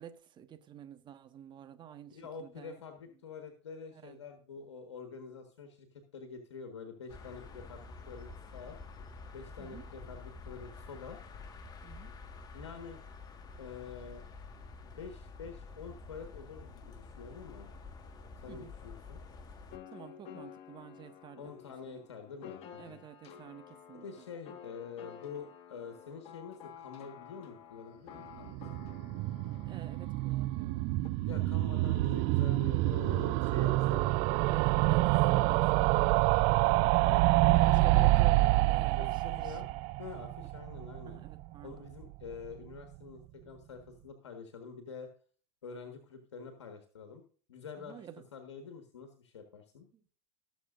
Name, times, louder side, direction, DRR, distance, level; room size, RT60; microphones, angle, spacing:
voice 1, 0.0-2.8 3.9-4.2 9.6-9.8 11.8-12.1 18.5-18.7 19.9-21.5 21.9-22.0 22.8-24.2 29.6-30.9 34.4-36.1 37.6-39.6 41.1-41.9 47.8-48.2 49.9-50.0, right 9 dB, 30° right, 1.4 m, -50 dB
voice 2, 2.1-8.8 9.3-11.2 12.5-13.0 13.6-14.3 14.8-17.7 18.4-19.2 21.4-23.0 23.9-28.9 31.2-34.2 37.0-39.7 40.0-41.2 41.6-45.1 45.6-47.2 47.5-48.0 48.3-49.9, left 5 dB, 85° left, 1.6 m, -47 dB
sound 1, 7.1-19.8, left 4 dB, 25° left, 1.7 m, -49 dB
sound 2, 19.7-31.1, left 9 dB, 45° left, 1.6 m, -52 dB
sound 3, 28.4-41.4 41.7-41.8 42.0-42.1 42.3-42.4, right 19 dB, 50° right, 0.5 m, -27 dB
18.5 x 7.2 x 2.6 m
hypercardioid pair, 100°, 14 cm